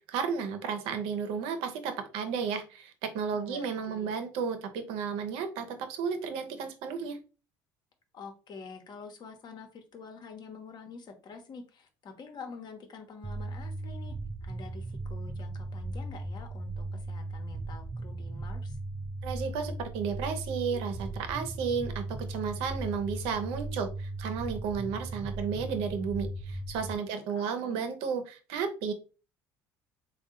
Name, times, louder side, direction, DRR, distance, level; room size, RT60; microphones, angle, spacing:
voice 1, 0.1-7.2 19.2-28.9, right 6 dB, 75° right, 0.8 m, -33 dB
voice 2, 3.3-4.1 8.1-14.2 14.4-18.8 27.0-27.8, left 4 dB, 50° left, 1.1 m, -47 dB
sound 1, 13.2-26.9, right 2 dB, 20° right, 0.4 m, -37 dB
3.6 x 2.4 x 3.7 m
hypercardioid pair, 70°, 10 cm